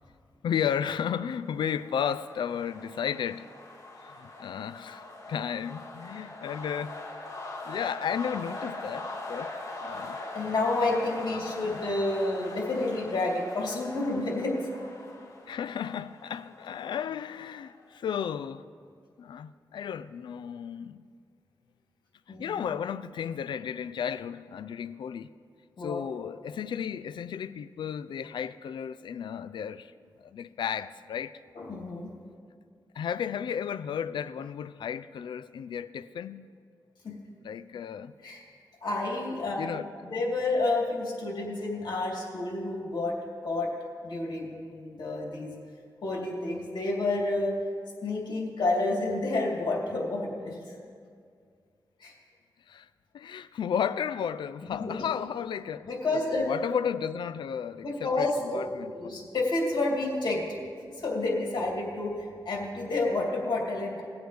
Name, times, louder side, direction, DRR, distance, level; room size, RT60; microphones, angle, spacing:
voice 1, 0.4-3.5 4.0-7.0 7.6-9.6 9.8-10.2 11.3-11.8 15.5-18.7 19.2-21.0 22.3-25.3 25.8-29.9 30.2-31.4 32.9-36.5 37.4-38.1 39.6-39.9 52.7-52.9 53.1-55.9 56.3-58.3 58.5-59.2, left 8 dB, 90° left, 0.4 m, -33 dB
sound 1, 1.3-17.9, left 2 dB, 45° left, 1.7 m, -42 dB
voice 2, 10.3-14.6 22.3-22.7 25.8-26.0 31.5-32.1 37.0-37.1 38.2-38.4 38.8-39.8 40.1-43.2 43.4-43.7 44.0-45.5 46.0-47.5 48.0-50.8 52.0-52.1 54.7-55.1 55.8-56.6 57.8-60.4 61.0-64.0, left 2 dB, 70° left, 2.7 m, -30 dB
20.0 x 7.9 x 3.4 m
wide cardioid pair, 115°, 8 cm